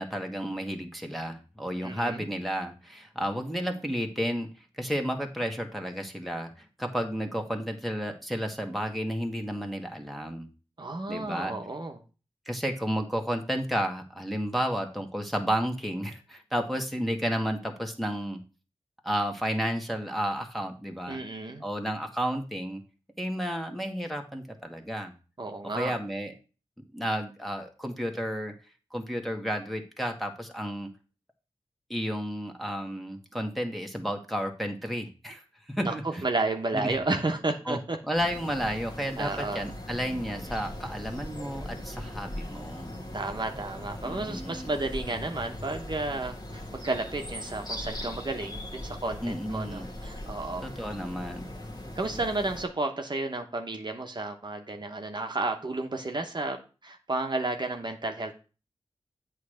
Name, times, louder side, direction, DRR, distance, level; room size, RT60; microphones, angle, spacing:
voice 1, 0.0-4.5 4.8-10.5 11.1-11.5 12.5-18.4 19.0-21.2 21.6-22.8 23.2-25.1 25.6-26.3 26.9-28.5 28.9-30.9 31.9-35.4 35.7-36.2 36.7-36.9 37.7-42.9 44.0-44.7 49.2-49.9 50.6-51.4, equal, ahead, 2 dB, 1.4 m, -32 dB
voice 2, 1.8-2.2 10.8-12.0 21.1-21.6 25.4-26.0 35.8-38.0 39.2-39.6 43.1-50.7 51.9-56.6 56.8-58.4, right 2 dB, 45° right, 4 dB, 1.0 m, -32 dB
sound 1, 38.2-52.7, left 1 dB, 40° left, 1.5 m, -40 dB
8.2 x 3.3 x 6.3 m, 0.34 s
cardioid pair, 50°, 11 cm